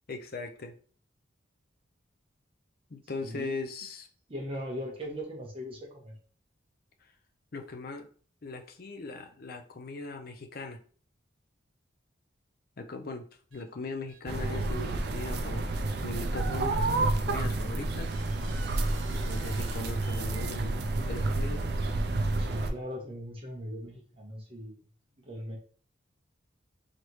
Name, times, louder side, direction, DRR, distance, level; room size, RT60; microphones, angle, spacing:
voice 1, 0.1-0.7 2.9-4.1 7.5-8.1 8.4-10.8 12.8-13.2 13.5-15.7 16.0-18.1 19.1-21.6, left 3 dB, 50° left, 5 dB, 0.5 m, -39 dB
voice 2, 3.2-3.6 4.3-6.1 22.4-24.7 25.2-25.6, equal, 30° right, -1 dB, 1.0 m, -39 dB
sound 1, 13.5-13.6 14.1-14.2 15.1-15.3 16.2-16.3 16.9-17.0 18.0-20.5, right 4 dB, 90° right, 1.0 m, -50 dB
sound 2, 14.3-22.7, right 2 dB, 55° right, 0.4 m, -30 dB
4.0 x 3.3 x 3.1 m, 0.43 s
head